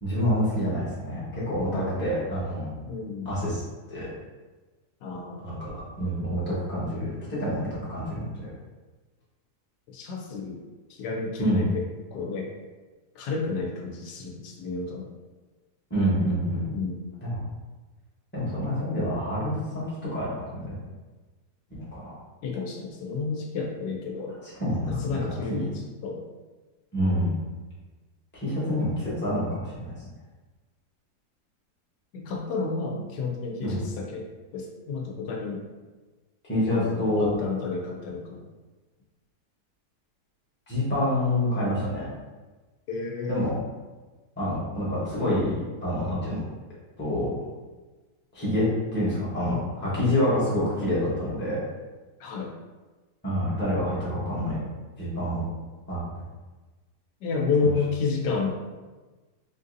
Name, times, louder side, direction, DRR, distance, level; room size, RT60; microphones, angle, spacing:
voice 1, 0.0-2.7 3.2-3.6 3.9-4.1 5.4-5.7 5.9-8.2 11.4-11.6 15.9-16.7 17.2-17.4 18.3-20.7 21.8-22.1 24.4-25.2 25.5-25.6 26.9-27.3 28.3-29.9 33.6-33.8 36.5-37.3 40.7-42.1 43.3-43.5 44.4-46.4 47.0-47.3 48.3-51.6 53.2-54.6 55.0-55.5 55.9-56.0, equal, 10° left, -9 dB, 0.8 m, -27 dB
voice 2, 1.7-2.3 2.9-3.4 5.0-5.5 9.9-10.6 10.9-11.8 12.1-12.5 13.2-15.1 16.7-17.1 22.4-24.4 24.8-25.7 26.0-26.2 32.1-34.3 34.5-35.7 36.7-38.5 42.9-43.5 52.2-52.5 57.2-58.5, left 4 dB, 80° left, 0 dB, 1.2 m, -31 dB
3.8 x 2.6 x 2.5 m, 1.3 s
omnidirectional pair, 1.8 m